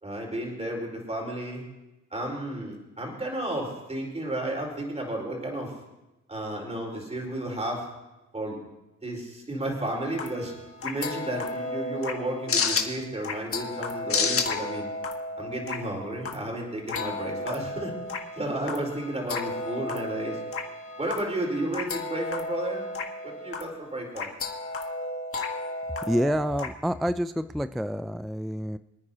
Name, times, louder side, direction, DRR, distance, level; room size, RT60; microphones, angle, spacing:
voice 1, 0.0-1.6 2.1-5.7 6.3-7.8 8.3-8.6 9.0-10.5 10.8-14.9 15.4-17.9 18.4-20.4 21.0-22.9 23.2-24.3, right 1 dB, 20° right, -1 dB, 4.5 m, -32 dB
sound 1, 9.9-26.7, left 3 dB, 45° left, 1.7 m, -33 dB
voice 2, 26.0-28.8, equal, ahead, 12 dB, 0.3 m, -28 dB
27.0 x 9.5 x 2.9 m, 0.99 s
cardioid pair, 90°, 30 cm